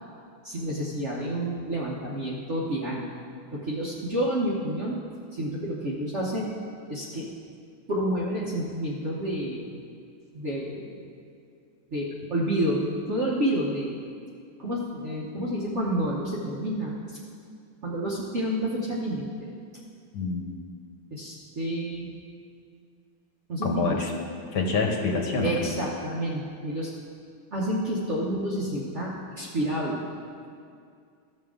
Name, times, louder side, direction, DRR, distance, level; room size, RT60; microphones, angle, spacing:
voice 1, 0.4-3.1 3.5-5.0 5.3-6.6 6.9-7.3 7.9-9.8 10.3-11.1 11.9-14.0 14.6-17.2 17.8-19.5 21.1-22.1 23.5-24.0 25.4-26.9 27.5-30.0, right 1 dB, 45° right, -4 dB, 1.0 m, -29 dB
voice 2, 20.1-20.6 23.6-24.1 24.5-25.7, left 4 dB, 60° left, 1 dB, 1.5 m, -26 dB
15.0 x 6.5 x 3.7 m, 2.3 s
omnidirectional pair, 2.2 m